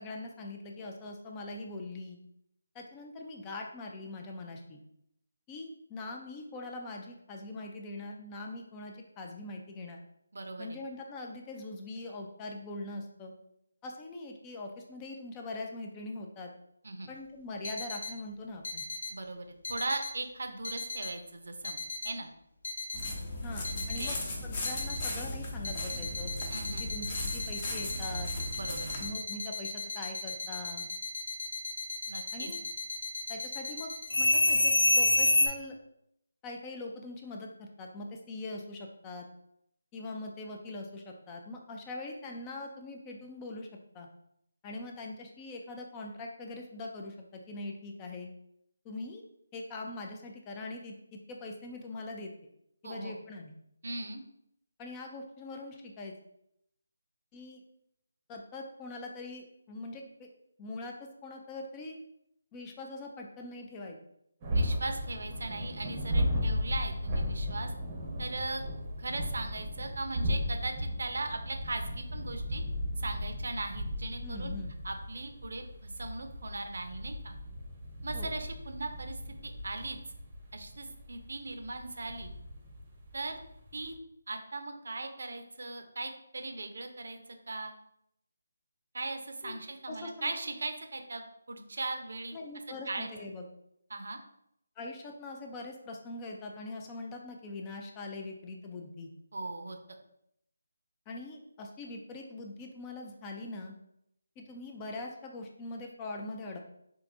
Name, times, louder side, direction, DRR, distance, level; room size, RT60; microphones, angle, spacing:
voice 1, 0.0-2.2 2.7-4.8 5.5-10.0 10.6-13.3 13.8-16.5 17.1-18.8 23.4-24.2 24.4-26.3 26.8-28.3 29.0-30.8 32.3-32.6 33.3-33.9 34.2-35.8 36.4-39.3 39.9-43.7 43.9-44.1 44.6-48.3 48.8-49.2 49.5-50.9 51.3-52.3 52.8-53.5 54.8-56.1 57.3-57.6 58.3-60.3 60.6-62.0 62.5-64.0 74.2-74.7 78.1-78.3 89.4-89.6 89.9-90.3 92.3-93.5 94.8-99.1 101.1-103.8 104.4-106.6, left 2 dB, 15° left, 2 dB, 0.3 m, -42 dB
voice 2, 10.3-10.8 16.8-17.1 19.1-21.8 22.0-22.3 23.7-24.2 26.5-26.9 28.5-29.0 32.1-32.5 52.8-53.2 53.8-54.2 64.5-67.7 68.2-68.6 69.0-72.6 73.0-74.5 74.8-77.3 78.0-80.0 80.5-82.3 83.1-83.4 83.7-83.9 84.3-87.2 87.5-87.7 88.9-91.2 91.5-92.4 92.9-93.1 93.9-94.2 99.3-99.8, right 2 dB, 70° right, 5 dB, 0.6 m, -38 dB
sound 1, 17.6-18.1 18.6-19.1 19.6-20.1 20.6-21.1 21.6-22.1 22.6-23.1 23.6-24.1 24.6-25.1 25.6-35.5, left 2 dB, 75° left, 0.6 m, -30 dB
sound 2, 22.9-29.1, left 1 dB, 30° left, 0.7 m, -37 dB
sound 3, 64.4-84.0, equal, 20° right, 0.7 m, -36 dB
4.6 x 2.5 x 2.5 m, 0.76 s
figure-of-eight pair, 165°, 0 cm